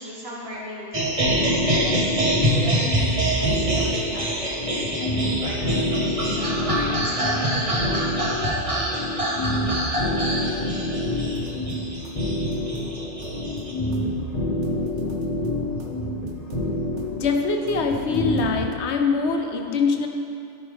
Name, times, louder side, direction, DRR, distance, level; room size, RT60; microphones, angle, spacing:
voice 1, 0.0-4.2 4.8-8.0 12.2-12.3, equal, 60° right, -6 dB, 2.1 m, -36 dB
sound 1, 0.9-13.7, right 1 dB, 30° right, 1.1 m, -25 dB
sound 2, 1.3-18.7, left 1 dB, 35° left, 1.2 m, -28 dB
sound 3, 11.3-11.7 12.0-13.6 13.9-15.5 15.8-18.9, right 4 dB, 80° right, 1.1 m, -42 dB
voice 2, 17.1-20.1, left 4 dB, 70° left, 4 dB, 0.9 m, -23 dB
13.0 x 5.4 x 3.5 m, 2.8 s
omnidirectional pair, 1.2 m